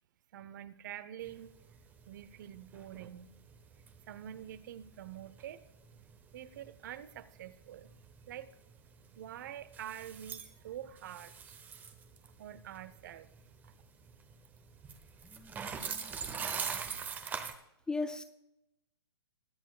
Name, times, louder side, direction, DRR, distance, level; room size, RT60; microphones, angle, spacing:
voice 1, 0.3-1.5 2.1-3.3 4.1-5.6 6.3-7.9 8.3-8.5 9.1-11.6 12.4-13.3, right 11 dB, 45° right, 0.7 m, -46 dB
sound 1, 1.2-17.5, right 6 dB, 15° right, 0.8 m, -44 dB
voice 2, 15.2-15.5 15.8-16.2 17.9-18.2, left 3 dB, 5° left, 0.4 m, -38 dB
21.5 x 9.1 x 2.4 m
hypercardioid pair, 125°, 14 cm